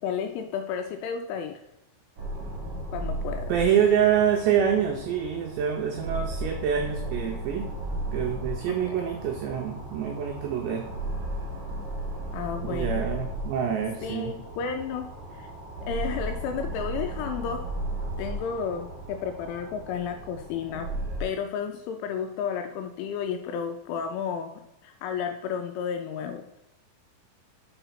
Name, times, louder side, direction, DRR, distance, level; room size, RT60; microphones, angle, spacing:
voice 1, 0.0-1.6 2.9-3.5 8.7-8.9 12.3-13.0 14.0-15.1 15.3-15.5 15.9-17.6 18.2-20.9 21.2-24.5 24.8-26.4, left 7 dB, 80° left, 5 dB, 2.8 m, -32 dB
sound 1, 2.2-21.2, right 1 dB, 45° right, 2.9 m, -35 dB
voice 2, 3.5-7.7 8.1-10.9 12.6-14.3, right 8 dB, 90° right, 3 dB, 2.4 m, -26 dB
6.8 x 4.6 x 5.7 m, 0.88 s
omnidirectional pair, 5.9 m